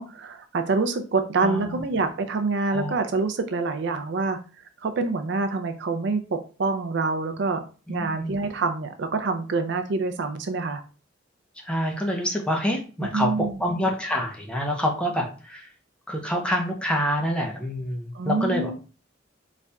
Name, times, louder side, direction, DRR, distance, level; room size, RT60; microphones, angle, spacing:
voice 1, 0.0-4.4 4.8-10.8 13.1-13.7 18.1-18.7, right 3 dB, 60° right, 8 dB, 0.5 m, -26 dB
voice 2, 1.4-1.8 2.7-3.0 7.9-8.4 11.7-15.7 16.1-18.7, equal, 5° left, 1 dB, 0.8 m, -27 dB
4.1 x 2.4 x 3.3 m, 0.35 s
head